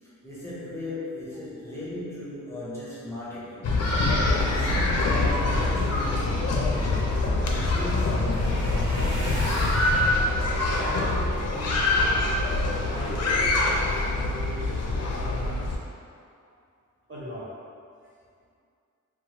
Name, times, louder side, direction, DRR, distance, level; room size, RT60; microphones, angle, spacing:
voice 1, 0.0-3.7 4.3-7.1 7.4-8.9, left 1 dB, 10° left, -10 dB, 0.6 m, -36 dB
sound 1, 3.6-15.8, left 2 dB, 55° left, 0.4 m, -24 dB
sound 2, 6.3-12.4 13.0-13.4 13.8-14.0 14.3-14.4, equal, 60° right, 1.4 m, -41 dB
voice 2, 10.5-12.3 12.8-15.6 16.4-16.5 17.1-17.5, equal, 40° right, -8 dB, 0.6 m, -39 dB
2.9 x 2.3 x 2.8 m, 2.3 s
wide cardioid pair, 145°, 31 cm